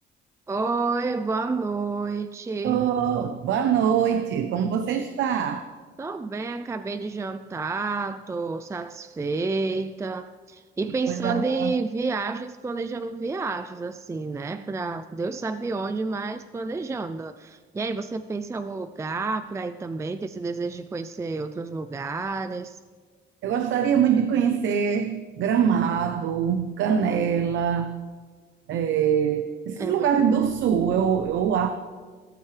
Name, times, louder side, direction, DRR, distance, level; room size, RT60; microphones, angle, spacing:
voice 1, 0.5-2.8 6.0-22.8 29.8-30.1, right 3 dB, 15° right, 11 dB, 0.4 m, -30 dB
voice 2, 2.6-5.7 11.1-11.7 23.4-27.9 28.7-31.7, right 8 dB, 75° right, 8 dB, 0.9 m, -23 dB
22.5 x 13.5 x 3.4 m, 1.5 s
cardioid pair, 140°, 20 cm